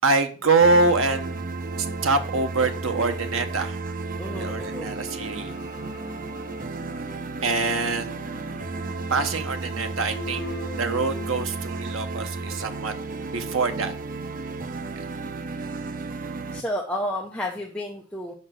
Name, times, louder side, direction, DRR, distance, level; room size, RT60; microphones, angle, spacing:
voice 1, 0.0-1.4 1.8-3.8 4.4-5.5 7.4-8.2 9.1-10.5 10.7-12.9 13.3-13.9, right 3 dB, 90° right, 7 dB, 1.0 m, -24 dB
sound 1, 0.6-16.6, right 3 dB, 40° right, 0.5 m, -33 dB
voice 2, 4.2-4.9 16.5-18.3, left 1 dB, 5° left, -1 dB, 0.7 m, -31 dB
sound 2, 4.3-11.4, left 1 dB, 50° left, 1.1 m, -41 dB
5.7 x 5.5 x 6.3 m, 0.41 s
head